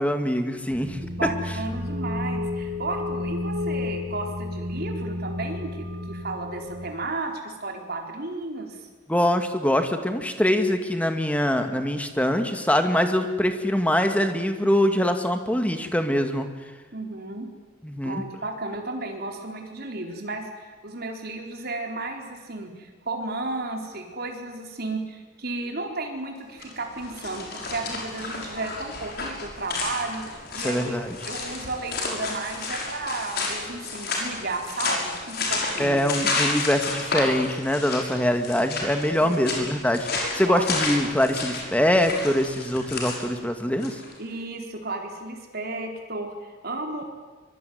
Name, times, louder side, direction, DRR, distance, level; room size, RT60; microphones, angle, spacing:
voice 1, 0.0-1.3 9.1-16.5 17.8-18.2 30.6-31.2 35.8-44.0, left 1 dB, 5° left, 6 dB, 2.0 m, -23 dB
sound 1, 0.7-6.9, left 2 dB, 75° right, 3.2 m, -31 dB
voice 2, 1.2-8.9 16.9-17.5 18.0-36.0 39.2-39.7 40.2-40.7 44.2-47.0, right 2 dB, 50° right, 3 dB, 4.2 m, -33 dB
sound 2, 26.5-44.1, left 3 dB, 55° left, 6.5 m, -31 dB
25.0 x 23.5 x 9.5 m, 1.3 s
head